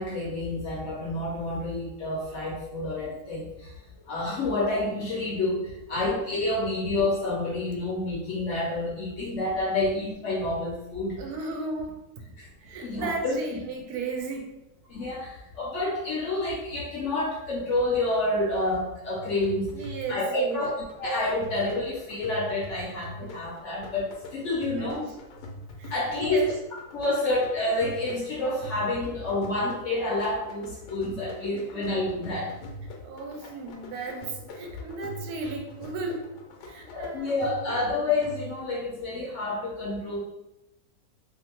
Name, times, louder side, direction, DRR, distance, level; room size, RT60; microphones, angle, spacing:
voice 1, 0.0-3.8 4.1-11.2 12.4-12.5 12.8-13.4 14.9-25.0 25.9-26.5 26.9-32.6 36.9-40.2, left 2 dB, 60° left, -4 dB, 0.8 m, -29 dB
voice 2, 11.2-12.0 12.6-14.6 19.7-20.6 23.2-23.3 24.8-25.1 25.8-26.5 31.5-31.8 33.0-36.3 36.6-37.8, right 3 dB, 75° right, 2 dB, 1.1 m, -35 dB
sound 1, 19.2-38.8, left 1 dB, 80° left, 1.1 m, -43 dB
2.7 x 2.5 x 2.9 m, 0.92 s
omnidirectional pair, 1.7 m